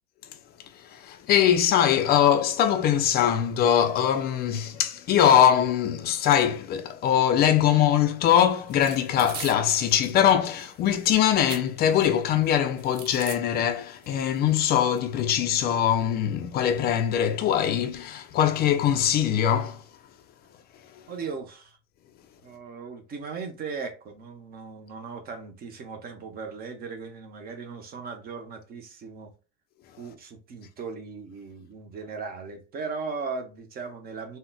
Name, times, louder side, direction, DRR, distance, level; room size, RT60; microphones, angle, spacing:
voice 1, 0.8-19.8, left 10 dB, 30° left, 0.4 m, -22 dB
sound 1, 8.7-10.2 10.5-12.1 12.4-13.4 14.0-14.1 14.4-15.0, right 7 dB, 60° right, 0.7 m, -41 dB
voice 2, 21.1-21.8 22.4-29.3 30.0-34.4, right 5 dB, 30° right, 0.6 m, -37 dB
3.7 x 2.1 x 2.2 m
supercardioid pair, 140°, 31 cm